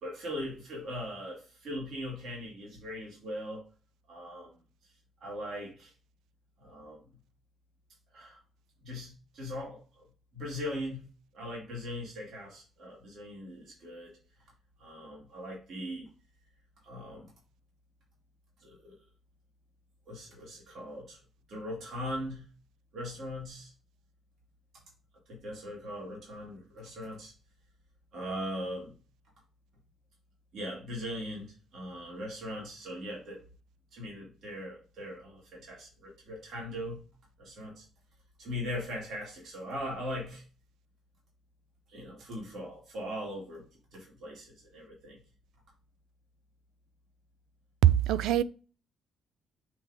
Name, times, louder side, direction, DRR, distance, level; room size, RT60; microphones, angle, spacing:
voice 1, 0.0-3.6 4.1-4.5 5.2-5.9 6.6-7.0 8.1-8.4 8.8-9.8 10.3-11.1 11.3-14.1 14.8-16.1 16.8-17.3 18.6-19.0 20.1-21.2 21.5-22.5 22.9-23.7 25.3-27.3 28.1-28.9 30.5-33.4 33.9-37.0 37.4-37.8 38.4-40.4 41.9-43.6 43.9-45.2, left 1 dB, 65° right, 3.4 m, -40 dB
voice 2, 47.8-48.4, right 11 dB, 85° right, 0.4 m, -22 dB
7.6 x 3.5 x 4.9 m
cardioid pair, 90°, 0 cm